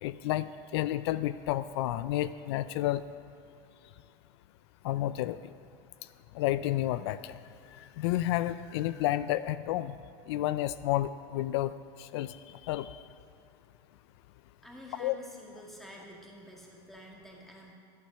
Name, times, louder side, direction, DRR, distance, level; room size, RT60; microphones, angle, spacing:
voice 1, 0.0-3.0 4.8-5.5 6.3-7.4 7.8-10.0 10.3-11.7 12.0-13.0 15.0-15.2, left 14 dB, 80° left, 14 dB, 0.4 m, -31 dB
voice 2, 14.6-17.7, left 1 dB, ahead, -3 dB, 1.9 m, -49 dB
12.0 x 10.5 x 5.5 m, 2.7 s
supercardioid pair, 145°, 14 cm